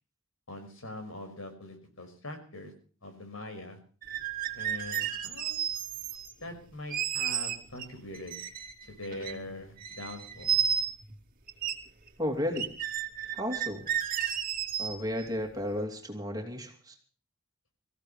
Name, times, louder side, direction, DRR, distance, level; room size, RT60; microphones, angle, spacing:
voice 1, 0.5-2.7 3.0-3.8 4.5-5.6 6.4-8.3 8.9-10.6, left 1 dB, 75° left, 6 dB, 5.5 m, -42 dB
sound 1, 4.0-6.3 6.9-7.9 8.1-9.5 9.8-11.1 11.5-11.7 12.1-12.2 12.5-15.3, right 9 dB, 45° right, 2.1 m, -32 dB
voice 2, 12.2-12.7 13.3-13.9 14.8-16.9, left 1 dB, 20° right, 3 dB, 2.8 m, -33 dB
24.5 x 15.5 x 3.3 m, 0.40 s
head